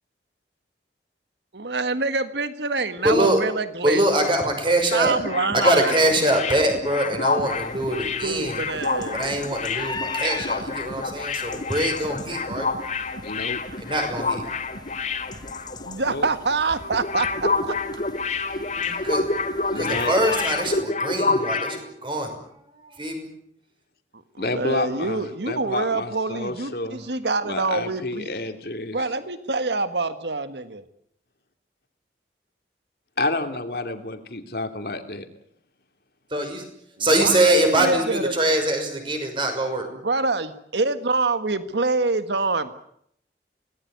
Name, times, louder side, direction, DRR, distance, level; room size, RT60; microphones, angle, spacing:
voice 1, 1.5-4.0 4.9-5.9 6.2-6.3 8.2-9.3 15.8-17.8 24.1-28.3 28.9-30.8 37.2-38.3 40.0-42.7, right 3 dB, 80° right, 11 dB, 1.6 m, -26 dB
voice 2, 3.0-3.4 3.8-5.2 5.5-8.6 9.1-12.7 13.8-14.4 18.8-19.2 19.7-22.3 22.7-23.3 36.3-36.7 37.0-39.9, right 1 dB, 30° right, 5 dB, 5.9 m, -23 dB
sound 1, 4.6-16.1 16.3-16.5 16.8-21.8, left 4 dB, 40° left, 2.6 m, -28 dB
sound 2, 7.5-20.8, left 3 dB, 25° left, 1.3 m, -39 dB
voice 3, 13.2-13.6 16.1-16.3 19.7-20.1 24.4-27.0 27.4-29.0 33.2-35.3, left 2 dB, 60° left, 7 dB, 2.7 m, -29 dB
25.0 x 19.0 x 9.4 m, 0.71 s
head